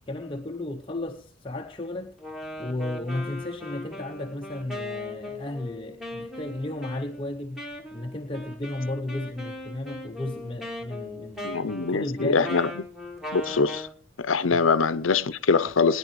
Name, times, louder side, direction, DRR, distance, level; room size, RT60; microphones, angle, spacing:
voice 1, 0.1-2.2 2.6-7.6 7.9-12.5 14.5-14.6, left 1 dB, 25° left, 0.7 m, -34 dB
Wind instrument woodwind instrument, 2.2-13.9, left 1 dB, ahead, 2.0 m, -39 dB
voice 2, 11.4-12.7 13.3-13.9 14.2-16.0, left 4 dB, 70° left, 0.7 m, -23 dB
20.5 x 10.0 x 3.2 m
head